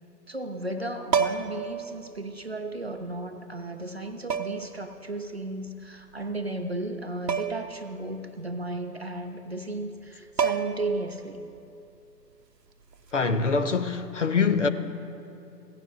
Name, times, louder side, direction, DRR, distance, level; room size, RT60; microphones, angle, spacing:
voice 1, 0.3-11.4, right 2 dB, 40° right, 0.4 m, -34 dB
sound 1, 1.1-1.7 3.0-3.1 4.3-4.7 7.3-7.7 8.0-8.1 10.0-10.1 10.4-11.0 12.9-13.1, right 7 dB, 75° right, 0.7 m, -27 dB
voice 2, 13.1-14.7, left 5 dB, 50° left, 0.5 m, -24 dB
16.5 x 10.0 x 2.5 m
figure-of-eight pair, 140°, 49 cm